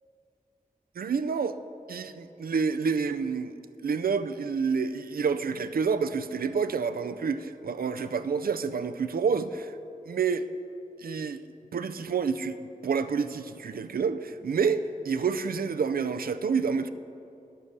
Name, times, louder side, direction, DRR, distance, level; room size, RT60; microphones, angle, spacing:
voice 1, 1.0-1.6 1.9-3.6 3.8-9.7 10.1-10.5 11.0-11.4 11.7-12.6 12.8-16.9, right 5 dB, 90° right, 10 dB, 0.4 m, -28 dB
9.6 x 8.1 x 6.6 m, 2.6 s
wide cardioid pair, 55°, 15 cm